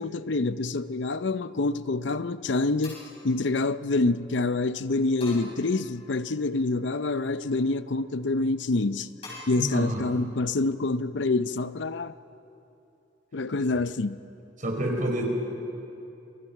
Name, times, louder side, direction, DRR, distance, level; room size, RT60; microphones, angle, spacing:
voice 1, 0.0-3.0 3.2-9.1 9.5-12.1 13.3-14.2, left 3 dB, 70° left, 0.7 m, -26 dB
sound 1, 1.5-2.0 2.8-4.2 5.2-6.3 6.8-7.5 9.2-9.5, left 2 dB, 35° left, 7.3 m, -47 dB
voice 2, 9.6-10.0 14.6-15.4, right 1 dB, 45° right, 4.4 m, -28 dB
28.0 x 24.0 x 5.9 m
head